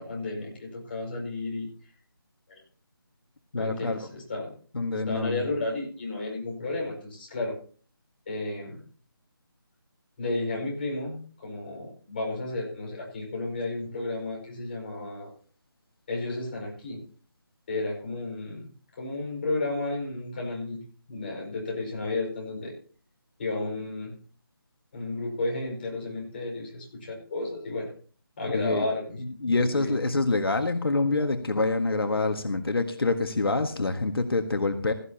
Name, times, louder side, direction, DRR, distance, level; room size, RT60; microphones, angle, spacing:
voice 1, 0.0-1.7 2.5-2.6 3.5-4.5 4.9-7.6 8.3-8.8 10.2-15.3 16.1-17.0 17.7-18.7 19.0-20.8 21.1-22.7 23.4-24.2 24.9-27.9 28.4-29.2 29.6-30.0, left 2 dB, 25° left, -3 dB, 5.5 m, -32 dB
voice 2, 3.5-4.0 4.7-5.4 28.5-28.9 29.2-34.9, left 3 dB, 75° left, 5 dB, 1.7 m, -26 dB
17.0 x 15.5 x 2.9 m, 0.43 s
figure-of-eight pair, 170°, 12 cm